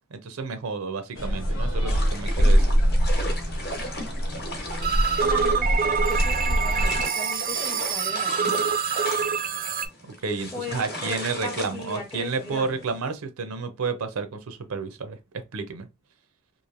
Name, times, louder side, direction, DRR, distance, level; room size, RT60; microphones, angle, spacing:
voice 1, 0.1-2.7 10.0-15.2 15.5-15.9, right 4 dB, 85° right, 0.6 m, -31 dB
sound 1, 1.2-7.0, equal, 70° left, 1.0 m, -24 dB
sound 2, 1.9-13.0, left 1 dB, 45° left, 1.0 m, -37 dB
sound 3, 4.8-9.9, right 6 dB, 40° right, 0.3 m, -26 dB
voice 2, 5.2-8.7 10.5-12.8, left 2 dB, 15° left, 0.6 m, -38 dB
3.1 x 2.5 x 2.5 m
head